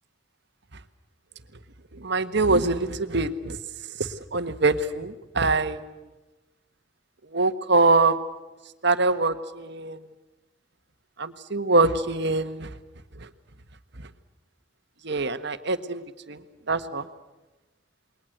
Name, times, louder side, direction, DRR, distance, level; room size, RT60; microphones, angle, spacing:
voice 1, 2.0-3.6 4.0-5.8 7.3-8.1 8.8-10.0 11.2-12.7 15.0-16.0 16.3-16.4 16.7-17.0, right 3 dB, 65° right, 9 dB, 1.6 m, -24 dB
28.5 x 22.0 x 7.9 m, 1.1 s
head